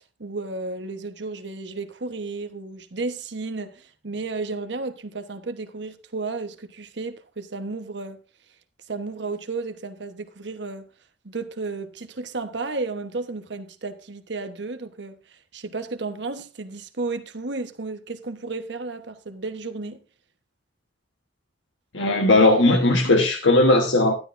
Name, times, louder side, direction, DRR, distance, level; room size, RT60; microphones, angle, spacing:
voice 1, 0.0-8.2 8.9-10.9 11.2-20.0, right 3 dB, 75° right, 1.2 m, -33 dB
voice 2, 21.9-24.1, left 2 dB, 85° left, 1.3 m, -17 dB
12.5 x 11.5 x 2.6 m
head